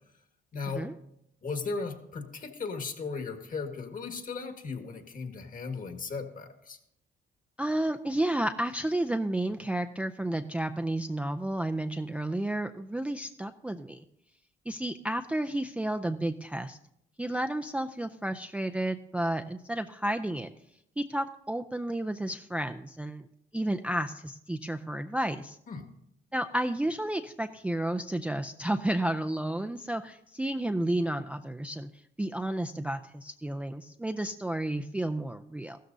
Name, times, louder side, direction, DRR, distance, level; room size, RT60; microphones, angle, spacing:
voice 1, 0.5-0.8 1.4-6.8 25.7-25.8, left 4 dB, 45° left, 6 dB, 1.6 m, -36 dB
voice 2, 7.6-14.0 14.7-16.8 17.2-20.5 21.0-23.3 23.5-25.6 26.3-31.9 32.2-35.8, right 1 dB, 5° right, 7 dB, 0.4 m, -31 dB
14.5 x 13.0 x 2.7 m, 0.78 s
cardioid pair, 90°, 20 cm